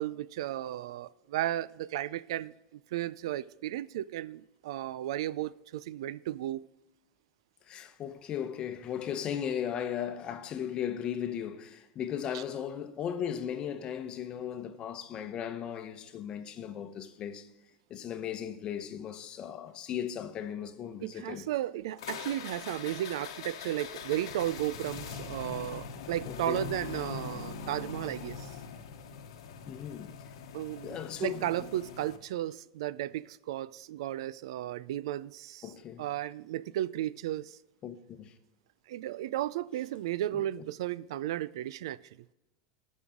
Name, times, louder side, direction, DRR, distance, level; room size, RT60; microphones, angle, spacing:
voice 1, 0.0-6.7 12.3-12.4 21.0-28.5 30.5-35.7 36.0-37.6 38.9-42.0, right 13 dB, 80° right, 0.3 m, -34 dB
voice 2, 7.7-17.5 17.9-21.5 26.3-26.7 29.7-30.2 30.8-31.7 35.6-36.1 37.8-38.3 40.3-40.4, left 9 dB, 35° left, 0.8 m, -37 dB
vespa scooter startup, 22.0-32.2, left 6 dB, 90° left, 1.0 m, -42 dB
14.0 x 5.5 x 3.7 m
supercardioid pair, 135°, 3 cm